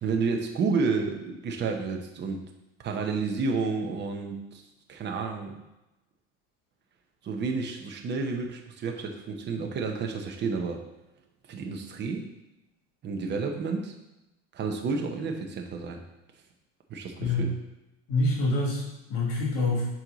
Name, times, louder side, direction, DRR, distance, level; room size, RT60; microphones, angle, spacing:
voice 1, 0.0-2.4 2.8-4.6 4.9-5.6 7.2-10.8 11.5-12.3 13.0-13.9 14.5-16.0 16.9-17.5, right 4 dB, 30° right, 3 dB, 0.9 m, -30 dB
voice 2, 18.1-19.8, left 2 dB, 70° left, -4 dB, 2.4 m, -26 dB
6.3 x 4.5 x 4.0 m, 0.95 s
cardioid pair, 140°, 36 cm